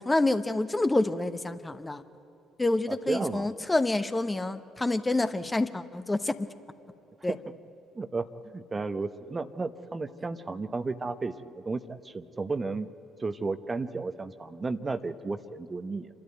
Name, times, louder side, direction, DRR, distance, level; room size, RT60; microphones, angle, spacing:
voice 1, 0.0-2.0 2.6-6.5 7.2-7.3, left 2 dB, 15° left, 10 dB, 1.0 m, -27 dB
voice 2, 2.9-3.5 7.3-7.4 7.9-8.3 8.5-12.9 13.2-16.1, right 3 dB, 25° right, 11 dB, 0.9 m, -33 dB
28.0 x 12.5 x 9.2 m, 2.9 s
figure-of-eight pair, 50°, 0 cm